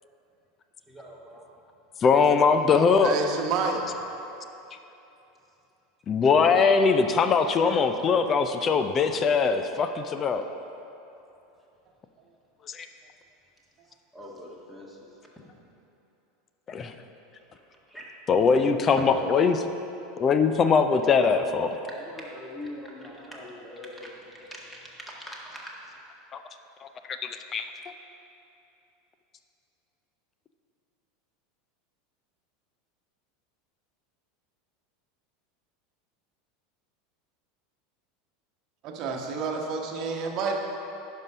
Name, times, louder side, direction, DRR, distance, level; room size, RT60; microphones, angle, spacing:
voice 1, 0.9-1.4 2.7-2.8 13.8-15.1 17.5-18.7 18.9-19.0 21.4-21.5 21.8-26.0, left 1 dB, 10° left, -3 dB, 1.8 m, -42 dB
voice 2, 2.0-3.1 6.1-10.4 12.7-12.9 16.7-16.9 18.3-19.6 20.2-21.8 26.3-26.4 26.8-27.7, left 5 dB, 30° left, 8 dB, 0.5 m, -22 dB
voice 3, 3.0-3.8 38.8-40.6, right 4 dB, 45° right, 2 dB, 1.1 m, -29 dB
10.5 x 5.6 x 5.0 m, 2.9 s
figure-of-eight pair, 80°, 0 cm